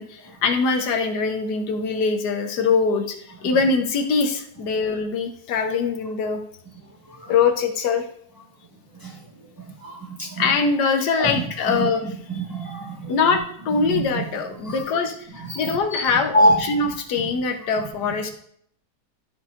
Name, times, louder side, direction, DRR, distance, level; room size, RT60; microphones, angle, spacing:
voice 1, 0.0-6.4 7.3-8.0 10.4-12.7 13.1-15.1 15.5-18.3, left 4 dB, 85° left, 6 dB, 1.4 m, -23 dB
voice 2, 9.8-10.4 11.2-11.3 11.7-11.8 12.3-13.1 13.9-14.2 14.6-14.8 15.5-16.5, equal, 15° right, -3 dB, 1.2 m, -24 dB
12.5 x 5.7 x 2.5 m, 0.65 s
omnidirectional pair, 1.7 m